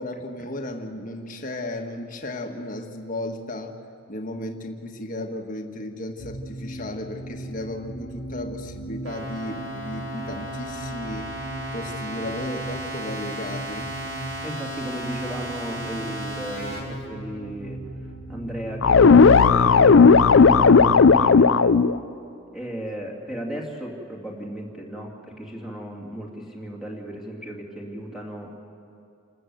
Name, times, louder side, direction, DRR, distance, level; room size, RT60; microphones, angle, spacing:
voice 1, 0.0-3.8 4.1-11.4 11.7-13.9, left 1 dB, 40° left, 3 dB, 1.6 m, -34 dB
sound 1, 6.2-20.9, right 1 dB, 80° left, 1.7 m, -38 dB
sound 2, 9.0-16.8, right 1 dB, 70° right, 4.5 m, -34 dB
voice 2, 14.4-17.8 18.3-21.8 22.5-28.6, equal, ahead, -3 dB, 2.7 m, -35 dB
sound 3, 18.8-21.9, left 5 dB, 65° left, 0.5 m, -14 dB
28.5 x 13.5 x 7.9 m, 2.5 s
head